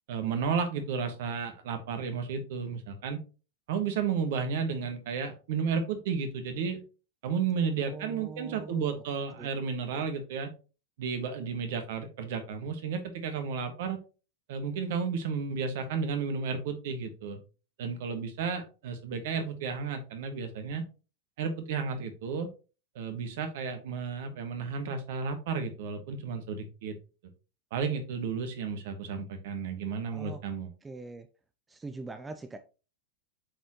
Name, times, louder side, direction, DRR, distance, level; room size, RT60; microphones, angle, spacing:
voice 1, 0.1-3.2 3.7-6.8 7.2-10.5 11.0-14.0 14.5-17.4 17.8-20.8 21.4-22.5 22.9-27.0 27.7-30.7, right 5 dB, 55° right, 7 dB, 1.3 m, -32 dB
voice 2, 7.8-9.0 9.4-9.5 9.9-10.0 30.1-30.4 30.8-31.3 31.7-32.6, right 3 dB, 10° right, 8 dB, 0.5 m, -42 dB
7.8 x 4.3 x 3.0 m, 0.33 s
figure-of-eight pair, 90°, 0 cm